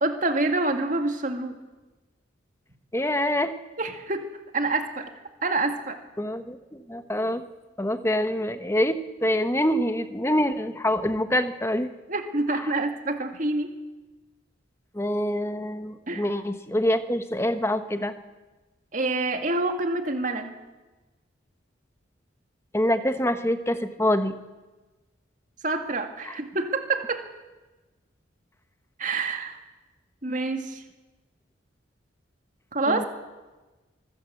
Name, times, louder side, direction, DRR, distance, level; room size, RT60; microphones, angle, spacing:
voice 1, 0.0-1.5 3.8-4.2 4.5-5.1 5.4-6.0 12.1-13.7 16.1-16.3 18.9-20.6 25.6-27.2 29.0-29.6 30.2-30.8 32.7-33.0, right 2 dB, 40° right, 6 dB, 2.1 m, -27 dB
voice 2, 2.9-3.5 6.2-7.4 7.8-11.9 12.5-12.7 14.9-18.1 22.7-24.3 26.2-26.4 32.9-33.0, left 1 dB, 15° left, 10 dB, 1.1 m, -25 dB
24.0 x 15.0 x 8.0 m, 1.2 s
head